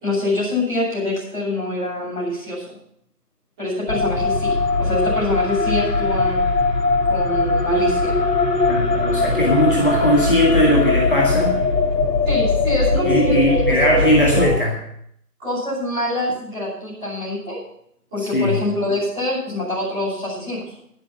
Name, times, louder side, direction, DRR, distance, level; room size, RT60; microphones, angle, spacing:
voice 1, 0.0-2.6 3.6-6.4 7.1-8.1 12.2-13.5 13.9-14.6 15.4-17.6 18.1-20.6, left 1 dB, 5° right, -19 dB, 3.4 m, -25 dB
sound 1, 3.9-14.6, left 3 dB, 80° left, 2.5 m, -20 dB
voice 2, 8.7-11.6 13.0-14.8 18.2-18.6, equal, 30° left, -3 dB, 1.9 m, -19 dB
11.5 x 10.0 x 6.2 m, 0.72 s
figure-of-eight pair, 170°, 48 cm